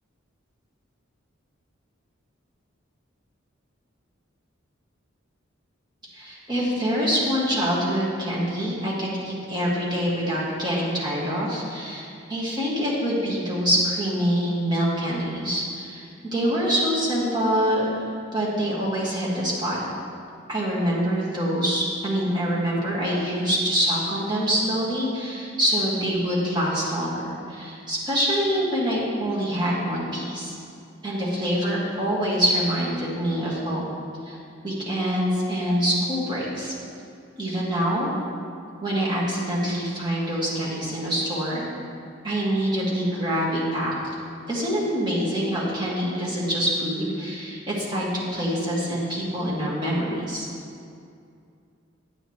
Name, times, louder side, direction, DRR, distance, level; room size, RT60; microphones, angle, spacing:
voice 1, 6.1-17.9 18.3-19.8 20.5-27.1 27.5-30.5 31.0-33.8 34.2-34.4 34.6-36.7 37.4-38.1 38.8-41.7 42.2-44.1 44.5-50.5, equal, 20° right, -7 dB, 1.9 m, -25 dB
9.4 x 9.2 x 3.1 m, 2.4 s
head